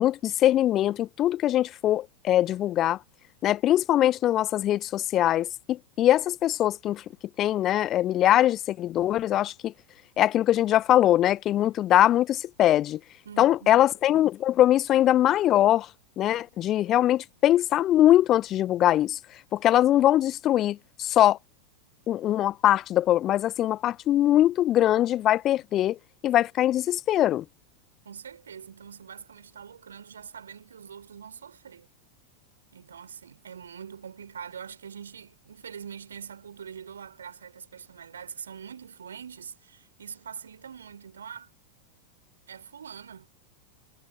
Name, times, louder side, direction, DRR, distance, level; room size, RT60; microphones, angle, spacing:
voice 1, 0.0-3.0 3.4-7.0 7.4-9.7 10.2-13.0 13.4-15.9 16.2-19.2 19.5-21.4 22.1-26.0 26.2-27.4, left 13 dB, 30° left, 0.5 m, -22 dB
voice 2, 13.2-13.9 28.0-31.9 32.7-41.5 42.5-43.3, right 7 dB, 70° right, 4.5 m, -43 dB
figure-of-eight pair, 90°, 0 cm